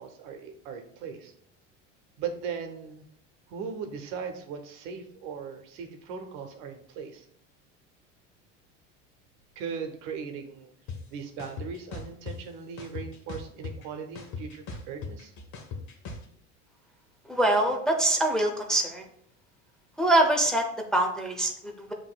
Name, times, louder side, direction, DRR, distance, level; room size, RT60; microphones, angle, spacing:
voice 1, 0.0-1.3 2.2-3.0 3.5-7.3 9.6-10.7 11.1-15.3, right 6 dB, 65° right, 6 dB, 0.9 m, -38 dB
sound 1, 10.9-11.0 11.4-12.4 12.8-13.9 14.2-16.2, left 4 dB, 50° left, 1.0 m, -37 dB
voice 2, 17.3-19.0 20.0-21.9, right 1 dB, ahead, 1 dB, 0.6 m, -24 dB
7.4 x 3.0 x 2.3 m, 0.66 s
hypercardioid pair, 95°, 37 cm